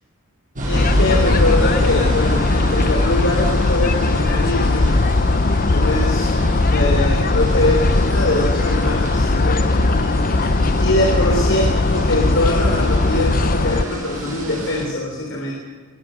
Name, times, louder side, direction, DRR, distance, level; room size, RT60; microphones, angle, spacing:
sound 1, 0.5-14.9, equal, 35° right, 7.1 m, -27 dB
voice 1, 0.6-4.9 5.7-9.8 10.2-10.3 10.8-15.5, left 1 dB, 60° left, -1 dB, 3.9 m, -23 dB
sound 2, 0.7-13.8, left 2 dB, 40° left, 0.7 m, -18 dB
23.0 x 20.5 x 6.5 m, 1.4 s
head